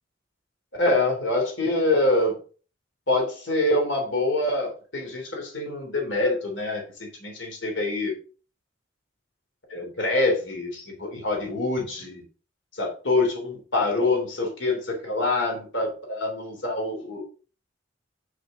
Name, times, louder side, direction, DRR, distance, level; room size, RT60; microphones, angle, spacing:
voice 1, 0.8-2.4 3.1-8.2 9.7-12.2 12.7-17.2, left 2 dB, 85° left, 2 dB, 3.1 m, -25 dB
8.3 x 6.6 x 3.8 m, 0.37 s
head